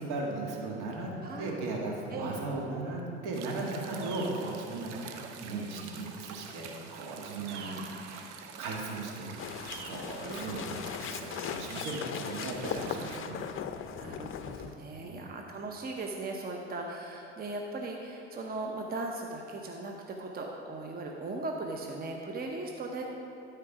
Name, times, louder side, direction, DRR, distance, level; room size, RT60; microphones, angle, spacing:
voice 1, 0.0-1.1 1.4-9.4 9.8-13.5 14.5-14.6 14.9-15.2, right 2 dB, 60° right, -1 dB, 1.8 m, -37 dB
voice 2, 1.2-1.6 2.1-2.3 3.9-4.2 7.5-8.3 10.2-10.9 12.4-12.6 12.9-23.0, right 2 dB, 25° right, 1 dB, 0.9 m, -39 dB
sound 1, 3.3-13.2, right 6 dB, 80° right, 0.7 m, -46 dB
sound 2, 9.4-14.7, left 8 dB, 40° left, 0.5 m, -38 dB
12.0 x 4.6 x 4.9 m, 3.0 s
hypercardioid pair, 65°, 34 cm